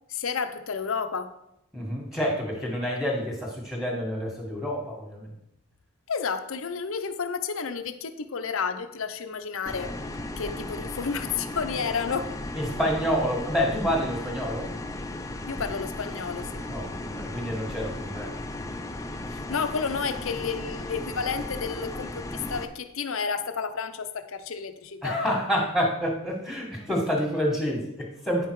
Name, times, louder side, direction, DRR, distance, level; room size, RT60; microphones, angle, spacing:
voice 1, 0.1-1.3 6.1-9.9 10.4-12.3 15.5-16.6 19.3-25.2, left 5 dB, 60° left, 9 dB, 0.6 m, -31 dB
voice 2, 1.7-5.3 12.5-14.7 16.7-18.3 25.0-28.5, equal, ahead, -1 dB, 1.7 m, -28 dB
sound 1, 9.7-22.7, left 1 dB, 15° left, 0.5 m, -36 dB
9.3 x 5.6 x 4.7 m, 0.84 s
head